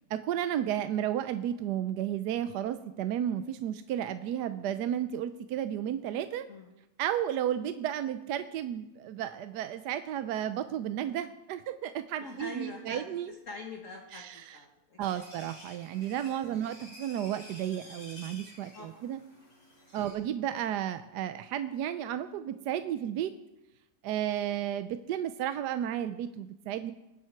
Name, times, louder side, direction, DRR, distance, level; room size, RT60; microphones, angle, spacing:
voice 1, 0.1-6.5 7.0-13.3 14.1-14.6 15.0-19.2 19.9-23.3 24.0-26.9, right 10 dB, 75° right, 10 dB, 1.1 m, -33 dB
voice 2, 12.2-15.2 16.5-16.6 18.7-19.1, left 2 dB, 50° left, 0 dB, 1.9 m, -45 dB
sound 1, 15.0-20.1, left 1 dB, 75° left, 6.3 m, -51 dB
21.0 x 7.6 x 4.5 m, 0.94 s
omnidirectional pair, 1.9 m